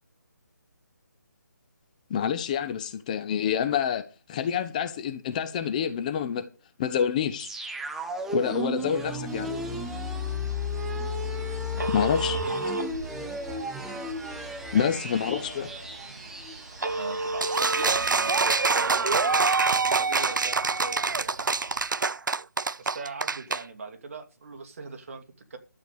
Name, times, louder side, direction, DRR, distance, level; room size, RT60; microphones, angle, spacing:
voice 1, 2.1-4.0 4.3-6.4 6.8-7.5 8.3-9.5 11.9-12.5 14.7-15.7, left 8 dB, 25° left, 0.9 m, -27 dB
sound 1, 7.4-18.2 18.5-18.6, left 1 dB, 5° right, 0.7 m, -34 dB
Telephone, 9.3-21.8, right 2 dB, 65° right, 4.0 m, -37 dB
voice 2, 11.7-12.0 14.7-16.0 17.0-21.4 22.8-25.6, right 4 dB, 45° right, 2.3 m, -41 dB
sound 2, 17.4-23.6, right 4 dB, 85° right, 0.5 m, -25 dB
12.5 x 8.0 x 6.7 m
figure-of-eight pair, 160°, 10 cm